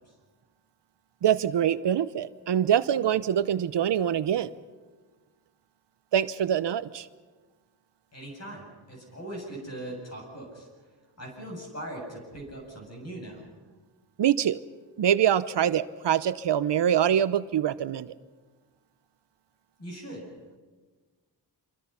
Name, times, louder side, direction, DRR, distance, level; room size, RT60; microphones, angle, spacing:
voice 1, 1.2-4.5 6.1-7.1 14.2-14.6 15.0-18.1, right 9 dB, 75° right, 14 dB, 0.8 m, -24 dB
voice 2, 8.1-10.7 11.2-13.5 19.8-20.2, right 1 dB, 35° left, 0 dB, 7.9 m, -40 dB
27.0 x 24.0 x 5.8 m, 1.4 s
wide cardioid pair, 155°, 43 cm